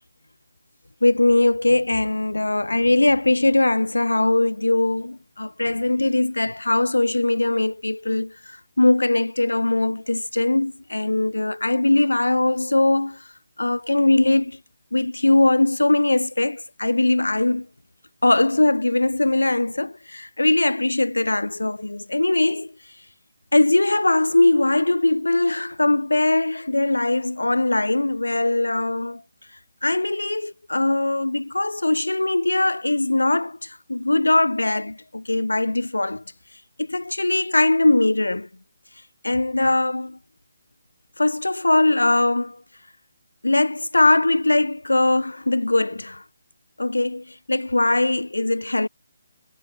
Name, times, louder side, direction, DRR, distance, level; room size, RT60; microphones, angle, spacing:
voice 1, 1.0-13.2 13.6-14.6 14.9-17.7 18.2-22.7 23.5-29.2 29.8-36.2 36.8-38.5 39.2-40.2 41.2-42.6 43.4-46.2 46.8-48.9, left 2 dB, 75° left, 0.5 m, -21 dB
figure-of-eight pair, 145°, 0 cm